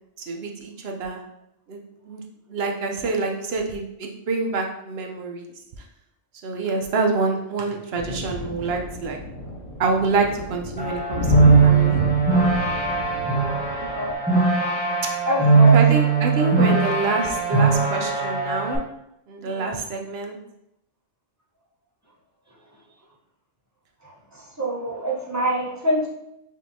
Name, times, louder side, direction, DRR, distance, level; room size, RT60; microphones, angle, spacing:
voice 1, 0.3-1.2 1.7-2.2 2.5-5.5 6.4-9.2 9.8-12.0 15.0-15.1 15.7-18.8 19.3-20.4, right 3 dB, 60° right, 2 dB, 0.8 m, -26 dB
sound 1, 8.0-14.1, left 1 dB, 85° left, 1.2 m, -30 dB
sound 2, 10.8-18.8, right 4 dB, 10° left, 1.0 m, -19 dB
voice 2, 13.8-14.2 15.3-15.8 19.4-19.8 24.0-26.1, equal, 20° right, -4 dB, 0.5 m, -26 dB
5.3 x 2.7 x 2.6 m, 0.81 s
omnidirectional pair, 1.3 m